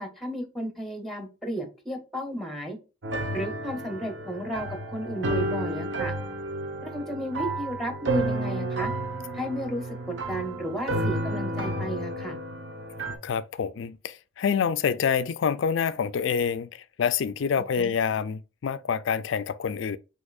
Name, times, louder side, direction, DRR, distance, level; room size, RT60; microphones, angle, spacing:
voice 1, 0.0-2.8 3.3-6.1 6.8-8.9 9.3-12.4 17.8-17.9, equal, ahead, 0.7 m, -33 dB
sound 1, 3.0-13.2, right 1 dB, 70° right, 1.0 m, -31 dB
voice 2, 13.2-20.0, left 6 dB, 75° left, 0.4 m, -27 dB
6.2 x 2.9 x 2.4 m
head